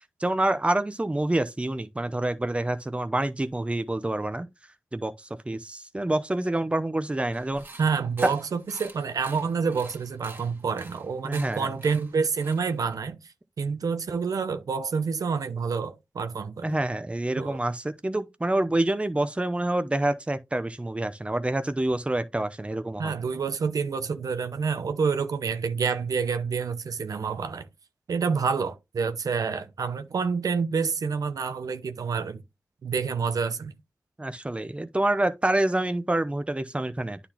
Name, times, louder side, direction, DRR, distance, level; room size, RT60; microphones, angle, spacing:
voice 1, 0.0-4.5 4.9-5.1 5.5-7.6 8.2-8.3 11.2-11.7 16.6-23.1 34.2-37.2, right 1 dB, 20° right, 0.7 m, -27 dB
sound 1, 7.3-13.1, right 2 dB, 35° right, 1.8 m, -47 dB
voice 2, 7.8-16.8 17.4-17.6 23.0-27.7 28.1-32.4 32.8-33.8, right 5 dB, 80° right, 0.7 m, -28 dB
9.8 x 4.1 x 2.9 m
cardioid pair, 50°, 6 cm